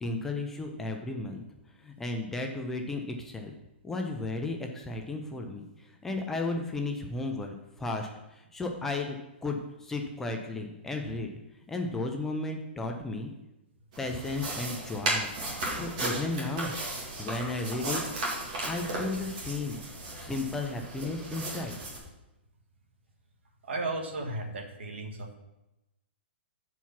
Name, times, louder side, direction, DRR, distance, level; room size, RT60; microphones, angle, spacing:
voice 1, 0.0-1.4 1.8-3.5 3.8-11.3 11.7-13.3 14.0-15.3 15.7-16.7 17.2-18.0 18.6-19.8 20.2-21.7, left 2 dB, 5° left, 2 dB, 0.4 m, -34 dB
sound 1, 13.9-22.0, right 2 dB, 40° right, 2.2 m, -35 dB
voice 2, 23.6-25.3, right 2 dB, 80° right, 2 dB, 1.4 m, -35 dB
7.0 x 4.6 x 5.7 m, 0.95 s
hypercardioid pair, 170°, 6 cm